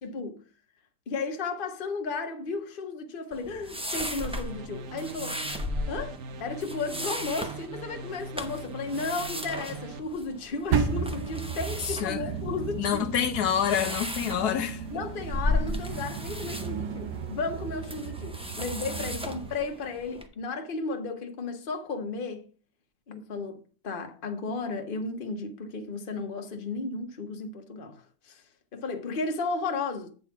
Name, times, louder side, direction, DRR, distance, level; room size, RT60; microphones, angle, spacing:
voice 1, 0.0-0.4 1.1-5.4 5.9-13.1 14.9-22.5 23.1-28.4 28.7-30.1, left 4 dB, 35° left, 1.1 m, -34 dB
sound 1, 3.3-20.3, left 1 dB, 5° right, 0.4 m, -36 dB
sound 2, 4.2-10.0, right 4 dB, 60° right, 1.0 m, -41 dB
sound 3, 10.7-19.5, right 6 dB, 80° right, 1.5 m, -34 dB
voice 2, 11.8-12.2 12.8-14.8, left 9 dB, 75° left, 1.2 m, -27 dB
9.0 x 4.0 x 5.8 m
omnidirectional pair, 1.7 m